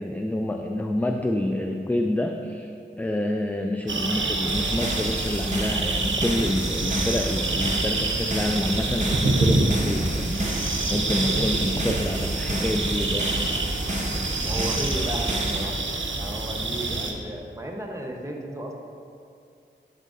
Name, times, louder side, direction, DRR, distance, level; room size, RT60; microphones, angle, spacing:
voice 1, 0.0-2.7 3.0-13.3, left 1 dB, 10° left, 3 dB, 0.3 m, -28 dB
sound 1, 3.9-17.1, right 3 dB, 80° right, 0.6 m, -27 dB
sound 2, 4.5-15.6, right 1 dB, 40° right, 1.0 m, -30 dB
voice 2, 14.4-15.7 16.1-18.7, right 1 dB, 15° right, 0 dB, 1.0 m, -34 dB
11.0 x 4.8 x 2.6 m, 2.4 s
wide cardioid pair, 40°, 20 cm